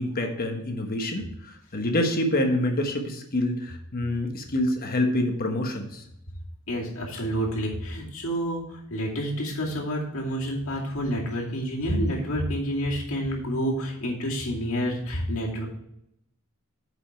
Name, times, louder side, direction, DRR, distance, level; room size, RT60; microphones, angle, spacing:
voice 1, 0.0-6.0, left 1 dB, 45° left, 4 dB, 1.2 m, -27 dB
voice 2, 6.7-15.7, equal, 70° left, -3 dB, 2.5 m, -29 dB
8.3 x 5.2 x 5.9 m, 0.79 s
head